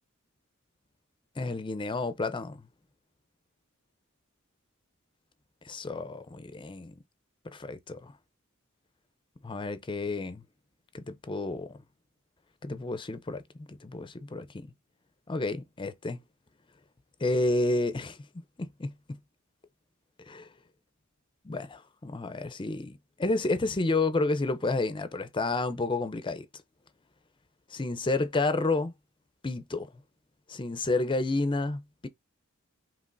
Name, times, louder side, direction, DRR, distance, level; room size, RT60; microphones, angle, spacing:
voice 1, 1.4-2.6 5.7-6.9 7.4-8.1 9.4-10.4 10.9-11.8 12.6-14.7 15.3-16.2 17.2-18.2 18.6-18.9 20.3-20.5 21.4-26.5 27.7-28.9 29.4-29.9 30.5-32.1, left 2 dB, 25° left, 0.5 m, -30 dB
5.3 x 2.9 x 2.5 m
head